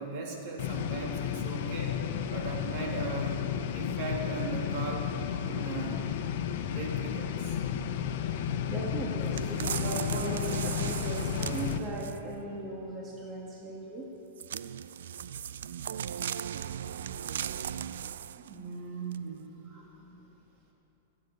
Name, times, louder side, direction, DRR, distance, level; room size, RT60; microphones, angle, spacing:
voice 1, 0.0-2.0 2.3-3.4 3.7-5.1 5.4-6.0 6.7-7.6 18.3-19.5, right 3 dB, 55° right, 0 dB, 3.0 m, -38 dB
sound 1, 0.6-11.8, left 9 dB, 65° left, 1.0 m, -33 dB
voice 2, 8.7-14.1 19.7-19.9, right 1 dB, 25° right, -2 dB, 2.0 m, -38 dB
sound 2, 9.4-12.4 14.4-18.5 19.1-19.2, right 9 dB, 85° right, 0.4 m, -37 dB
17.5 x 8.6 x 8.1 m, 3.0 s
hypercardioid pair, 130°, 0 cm